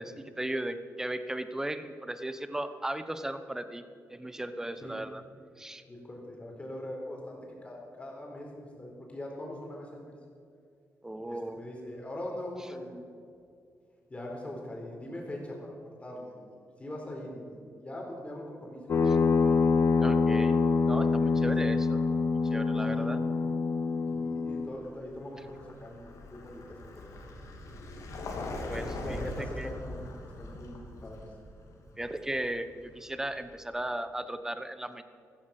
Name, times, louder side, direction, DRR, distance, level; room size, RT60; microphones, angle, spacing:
voice 1, 0.0-3.8 4.1-5.2 5.6-5.8 11.0-11.6 19.1-19.2 20.0-22.0 22.5-23.2 28.7-29.7 32.0-35.0, right 1 dB, 10° right, 10 dB, 0.9 m, -36 dB
voice 2, 5.9-10.1 11.3-13.0 14.1-15.7 16.0-19.3 21.4-21.7 22.9-23.1 24.1-27.1 28.8-30.1 30.4-31.3, left 1 dB, 20° left, -1 dB, 4.2 m, -42 dB
sound 1, 18.9-24.7, left 4 dB, 50° left, 0.8 m, -25 dB
Vehicle, 24.7-33.5, left 2 dB, 70° left, 2.7 m, -42 dB
14.5 x 14.5 x 6.0 m, 2.4 s
cardioid pair, 125°, 6 cm